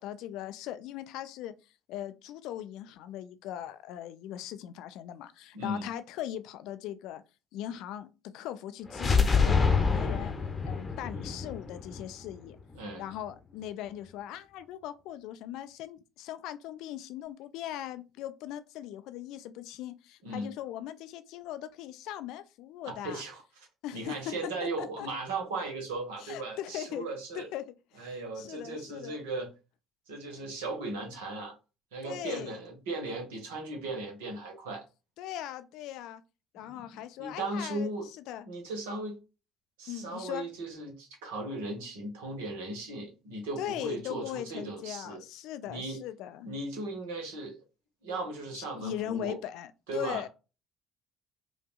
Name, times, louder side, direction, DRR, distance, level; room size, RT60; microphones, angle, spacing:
voice 1, 0.0-1.5 1.9-7.2 7.5-10.3 10.6-12.6 13.0-23.2 23.8-24.3 24.6-25.1 26.2-27.1 27.3-27.7 27.9-29.2 32.0-32.6 35.2-36.2 36.5-37.9 38.3-38.4 39.9-40.5 43.6-46.5 48.5-50.3, left 11 dB, 55° left, 0.4 m, -39 dB
voice 2, 5.5-5.9 12.7-13.0 20.2-20.5 22.8-23.7 23.9-27.5 28.0-29.5 30.1-31.5 31.9-34.8 36.6-36.8 37.2-38.1 38.4-39.2 39.8-45.2 45.7-46.0 46.4-47.6 48.0-49.4 49.9-50.2, right 2 dB, 65° right, 1.3 m, -37 dB
sound 1, 8.9-12.8, left 5 dB, 25° left, 0.8 m, -27 dB
4.9 x 2.6 x 2.3 m
figure-of-eight pair, 55°, 0 cm